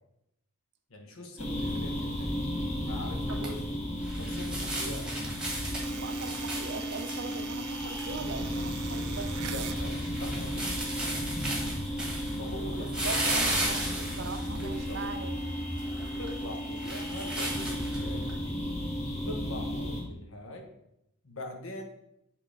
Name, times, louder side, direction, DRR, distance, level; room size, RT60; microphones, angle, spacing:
voice 1, 0.9-2.4 2.8-3.8 4.2-5.1 9.4-11.0 12.4-13.2 14.6-15.1 16.2-18.6 19.2-20.7 21.2-21.8, left 1 dB, 65° left, 2 dB, 1.3 m, -43 dB
sound 1, 1.4-20.0, equal, 30° left, 1.5 m, -34 dB
sound 2, 3.2-18.3, right 1 dB, 5° right, 1.4 m, -36 dB
sound 3, 5.8-9.8, right 9 dB, 90° right, 0.6 m, -43 dB
voice 2, 5.9-9.3 12.7-15.4, right 4 dB, 50° right, 7 dB, 0.6 m, -40 dB
7.5 x 3.7 x 5.1 m, 0.82 s
head